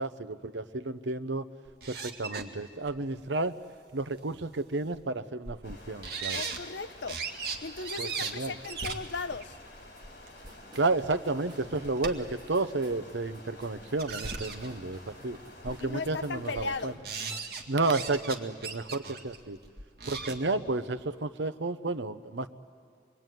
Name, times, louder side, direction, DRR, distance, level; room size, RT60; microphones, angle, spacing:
voice 1, 0.0-1.4 1.9-3.6 3.9-6.4 8.0-8.5 10.7-15.4 15.6-16.9 17.7-19.6 20.1-22.5, right 3 dB, 90° right, 0.9 m, -31 dB
sound 1, 1.7-2.4 2.9-3.0 4.2-4.3 4.9-5.0 5.4-5.7 6.0-6.6 7.1-8.3 8.6-10.5 11.1-11.2 11.5-12.3 12.9-13.0 13.7-14.8 15.3-15.4 15.6-16.0 16.4-16.7 17.0-18.4 18.6-20.4, right 5 dB, 55° right, 2.0 m, -37 dB
sound 2, 5.6-17.0, left 1 dB, 70° left, 4.8 m, -51 dB
voice 2, 6.3-7.2 7.6-9.6 15.8-17.0, left 4 dB, 90° left, 0.8 m, -37 dB
sound 3, 10.0-10.1 10.3-16.4 16.6-18.3, right 1 dB, 25° right, 3.5 m, -56 dB
26.5 x 22.0 x 9.3 m
head